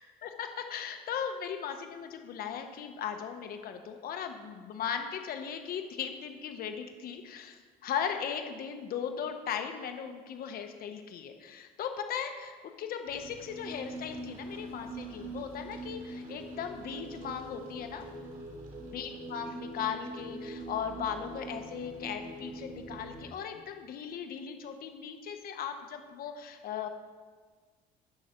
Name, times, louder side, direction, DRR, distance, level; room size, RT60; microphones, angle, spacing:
voice 1, 0.2-18.0 18.9-26.9, left 8 dB, 60° left, 6 dB, 1.1 m, -38 dB
sound 1, 13.1-23.3, right 1 dB, 55° right, 2.8 m, -43 dB
14.5 x 6.4 x 4.5 m, 1.5 s
cardioid pair, 110°, 17 cm